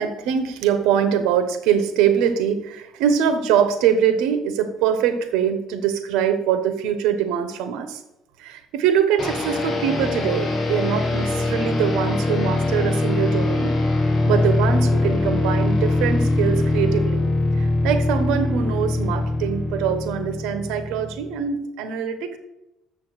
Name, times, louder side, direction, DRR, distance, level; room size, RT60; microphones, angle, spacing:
voice 1, 0.0-8.0 8.4-13.8 14.2-17.3 17.6-22.4, right 8 dB, 85° right, 9 dB, 1.2 m, -23 dB
sound 1, 9.2-21.4, left 2 dB, 25° left, 1.7 m, -22 dB
Brass instrument, 9.3-16.3, equal, 20° right, 2.5 m, -38 dB
7.3 x 7.0 x 6.3 m, 0.92 s
cardioid pair, 125°, 0 cm